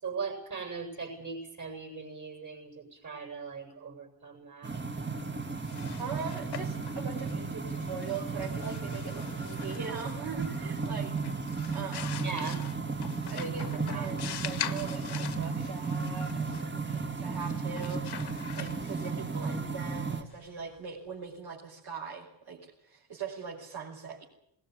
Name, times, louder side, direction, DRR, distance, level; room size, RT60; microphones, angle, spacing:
voice 1, 0.0-4.8 12.2-12.6 13.3-14.2, right 5 dB, 40° right, 4 dB, 7.2 m, -39 dB
sound 1, 4.6-20.2, right 4 dB, 25° right, 2.1 m, -34 dB
sound 2, 5.5-21.1, left 9 dB, 55° left, 1.6 m, -44 dB
voice 2, 6.0-11.1 11.5-12.2 13.3-24.2, right 6 dB, 55° right, -4 dB, 5.4 m, -41 dB
20.0 x 19.0 x 9.8 m, 0.73 s
cardioid pair, 105°, 46 cm